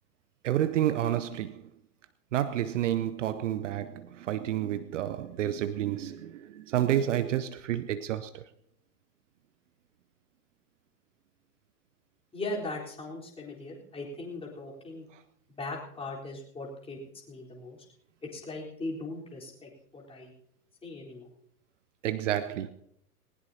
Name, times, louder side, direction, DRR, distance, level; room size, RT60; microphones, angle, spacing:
voice 1, 0.4-1.7 2.3-8.4 15.1-15.2 22.0-22.7, right 11 dB, 50° right, 0.8 m, -30 dB
voice 2, 12.3-15.0 15.5-17.0 17.3-17.8 18.2-20.3 20.8-21.3, left 2 dB, 10° left, 4.0 m, -39 dB
19.5 x 19.0 x 2.8 m
figure-of-eight pair, 100°, 47 cm